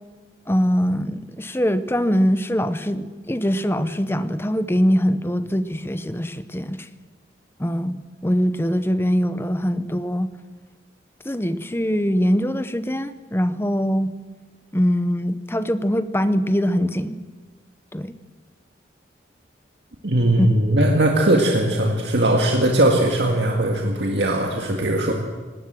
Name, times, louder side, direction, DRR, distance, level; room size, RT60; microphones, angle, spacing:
voice 1, 0.5-6.9 7.6-10.3 11.2-14.1 14.7-17.2 17.9-18.1 20.4-20.5, equal, 10° left, 12 dB, 0.8 m, -22 dB
voice 2, 20.0-25.1, right 1 dB, 65° right, 1 dB, 1.9 m, -19 dB
19.0 x 18.0 x 7.6 m, 1.4 s
head